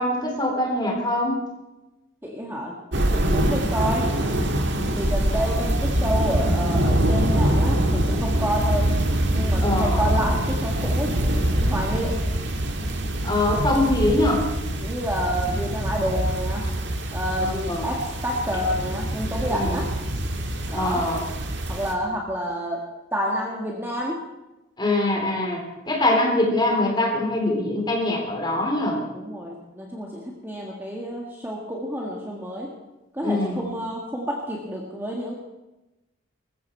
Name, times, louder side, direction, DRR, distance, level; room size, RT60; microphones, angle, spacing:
voice 1, 0.0-1.4 5.3-5.4 9.6-10.1 13.2-14.4 17.4-17.9 19.5-19.8 20.7-21.2 24.8-29.0 33.2-33.7, left 1 dB, 20° left, 0 dB, 3.6 m, -23 dB
voice 2, 2.2-2.7 3.1-4.1 4.9-8.9 9.3-12.2 14.8-16.7 17.1-19.9 20.7-21.0 21.7-22.8 23.1-24.2 29.1-32.7 33.1-35.3, equal, 10° right, -2 dB, 1.8 m, -29 dB
sound 1, 2.9-21.9, right 1 dB, 55° right, 1.8 m, -24 dB
20.0 x 14.5 x 4.6 m, 1.0 s
head